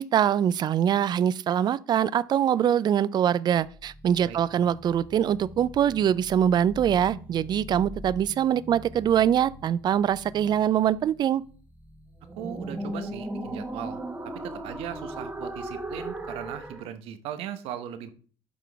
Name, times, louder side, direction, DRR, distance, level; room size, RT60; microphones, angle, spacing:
voice 1, 0.0-11.4, right 9 dB, 45° right, 0.4 m, -23 dB
sound 1, 3.6-16.9, right 1 dB, 15° right, 1.5 m, -39 dB
voice 2, 12.4-14.0 14.4-18.1, right 9 dB, 75° right, 0.9 m, -38 dB
11.0 x 3.8 x 3.4 m
supercardioid pair, 80°, 10 cm